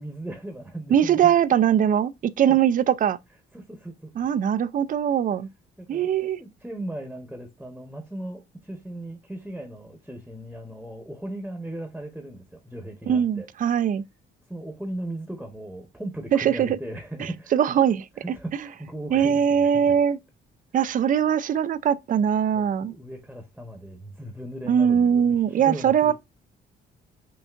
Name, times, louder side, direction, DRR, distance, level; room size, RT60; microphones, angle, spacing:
voice 1, 0.0-1.3 2.5-2.6 3.5-4.1 5.8-13.5 14.5-17.8 18.2-19.9 22.5-26.1, right 1 dB, ahead, 1.0 m, -37 dB
voice 2, 0.9-3.2 4.2-5.5 5.9-6.4 13.1-14.0 16.3-16.8 17.2-18.0 19.1-20.2 20.7-22.9 24.7-26.1, right 8 dB, 45° right, 0.4 m, -21 dB
5.8 x 2.4 x 2.4 m
cardioid pair, 90°, 20 cm